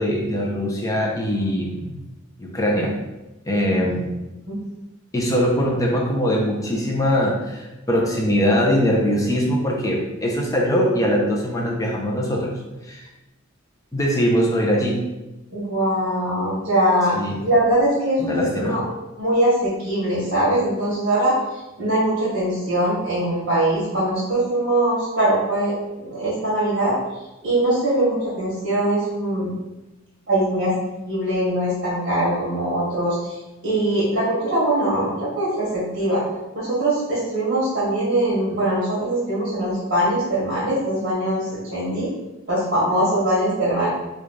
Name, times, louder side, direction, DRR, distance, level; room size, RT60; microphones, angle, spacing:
voice 1, 0.0-2.0 2.4-3.0 3.5-4.1 5.1-13.1 13.9-15.0 17.1-17.4 18.2-18.8, equal, 15° left, -2 dB, 0.5 m, -22 dB
voice 2, 15.5-17.1 17.4-18.8 19.2-26.9 27.4-29.5 30.3-30.7 31.0-36.2 36.5-42.1 42.5-43.9, right 1 dB, 55° right, -10 dB, 1.4 m, -22 dB
3.2 x 2.4 x 3.8 m, 1.0 s
head